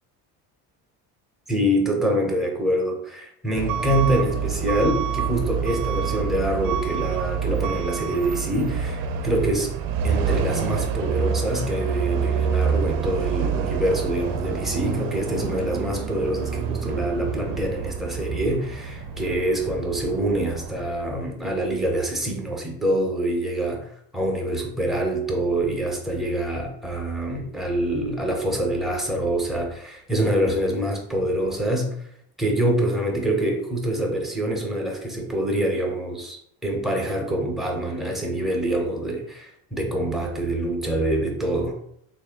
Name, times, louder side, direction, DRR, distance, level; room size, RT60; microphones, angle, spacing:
voice 1, 1.5-9.7 10.0-23.8 24.1-31.9 32.4-41.8, right 1 dB, ahead, 0 dB, 0.7 m, -25 dB
Truck / Alarm, 3.6-20.8, right 7 dB, 60° right, 0.5 m, -27 dB
3.3 x 2.6 x 3.5 m, 0.71 s
cardioid pair, 110°, 40 cm